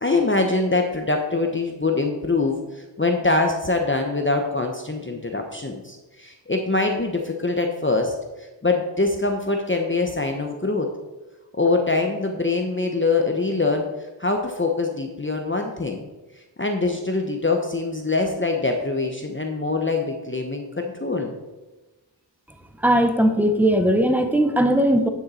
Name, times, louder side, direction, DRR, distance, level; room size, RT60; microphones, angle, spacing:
voice 1, 0.0-10.9 11.6-13.9 14.2-16.0 16.3-21.4, left 3 dB, 25° left, 2 dB, 0.9 m, -24 dB
voice 2, 22.8-25.1, right 1 dB, 5° right, 6 dB, 1.0 m, -18 dB
10.0 x 6.5 x 4.2 m, 1.1 s
wide cardioid pair, 45°, 43 cm